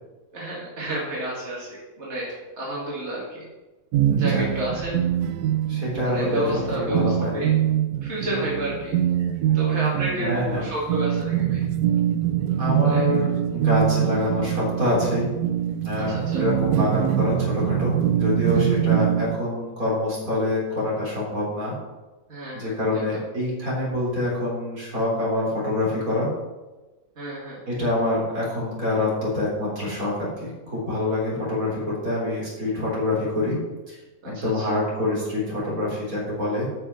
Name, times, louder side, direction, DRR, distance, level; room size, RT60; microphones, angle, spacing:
voice 1, 0.3-3.4 4.1-4.9 6.0-7.5 8.0-8.9 9.2-9.3 9.5-11.6 12.8-13.0 15.9-16.4 18.5-18.8 22.3-23.2 27.2-27.6 34.2-34.6, right 1 dB, 50° right, -6 dB, 2.5 m, -31 dB
sound 1, 3.9-19.4, right 10 dB, 90° right, 1.1 m, -24 dB
voice 2, 4.1-4.4 5.7-7.4 10.2-10.6 12.6-15.3 15.7-21.7 22.5-26.3 27.7-33.6 33.9-34.0 34.2-36.7, left 1 dB, 70° right, -5 dB, 4.5 m, -26 dB
12.5 x 5.8 x 5.6 m, 1.2 s
omnidirectional pair, 1.6 m